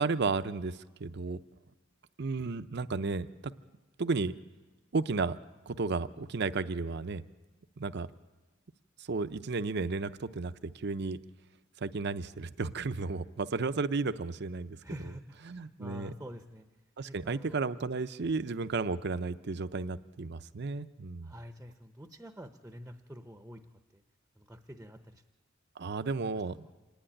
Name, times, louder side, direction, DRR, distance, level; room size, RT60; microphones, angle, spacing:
voice 1, 0.0-1.4 2.2-3.5 4.0-4.3 4.9-5.4 5.7-7.2 7.8-8.1 9.0-11.2 11.8-14.8 15.5-16.1 17.0-21.3 25.8-26.7, right 4 dB, 60° right, 11 dB, 0.6 m, -33 dB
voice 2, 14.8-16.7 17.0-17.6 21.2-23.6 23.9-24.0 24.4-25.2 26.3-26.7, equal, 10° right, 6 dB, 0.8 m, -47 dB
26.0 x 10.5 x 9.9 m, 1.2 s
head